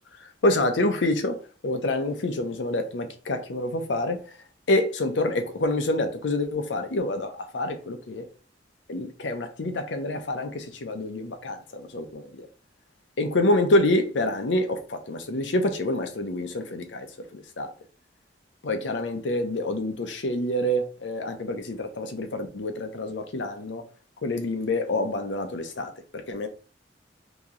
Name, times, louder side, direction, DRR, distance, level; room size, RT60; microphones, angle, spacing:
voice 1, 0.4-1.4 1.6-4.2 4.7-8.3 8.9-12.5 13.2-17.1 17.3-17.7 18.6-23.8 24.2-26.5, left 1 dB, 80° left, 0.6 m, -27 dB
3.0 x 2.8 x 3.7 m
head